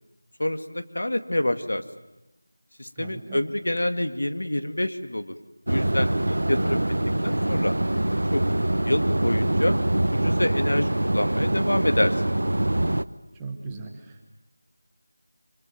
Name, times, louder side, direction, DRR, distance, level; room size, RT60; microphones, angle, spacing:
voice 1, 0.4-1.8 2.8-5.4 5.7-6.8 7.2-7.8 8.3-8.4 8.8-9.8 10.1-12.1, left 1 dB, 90° left, 8 dB, 2.1 m, -27 dB
voice 2, 3.0-3.4 13.4-14.3, right 4 dB, 5° right, 2 dB, 1.1 m, -38 dB
sound 1, 5.7-13.0, right 1 dB, 90° right, 1.0 m, -24 dB
25.0 x 23.5 x 9.2 m, 0.99 s
figure-of-eight pair, 180°, 0 cm